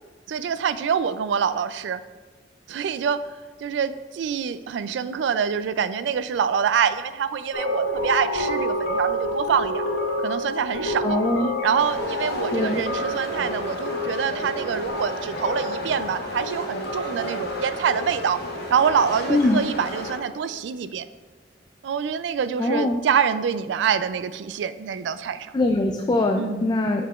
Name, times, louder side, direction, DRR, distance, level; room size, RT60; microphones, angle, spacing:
voice 1, 0.3-2.0 2.7-3.2 3.6-9.9 10.2-11.2 11.6-18.4 18.7-21.1 21.8-25.5 26.4-26.7, right 7 dB, 75° right, 13 dB, 0.3 m, -25 dB
sound 1, 7.5-20.2, equal, 80° left, 2.0 m, -29 dB
voice 2, 11.0-11.5 12.5-12.8 19.3-19.6 22.6-23.0 25.5-27.1, left 2 dB, 25° left, 3 dB, 0.3 m, -22 dB
sound 2, 11.8-20.2, left 1 dB, 60° left, 1.0 m, -34 dB
7.2 x 6.9 x 2.4 m, 1.3 s
head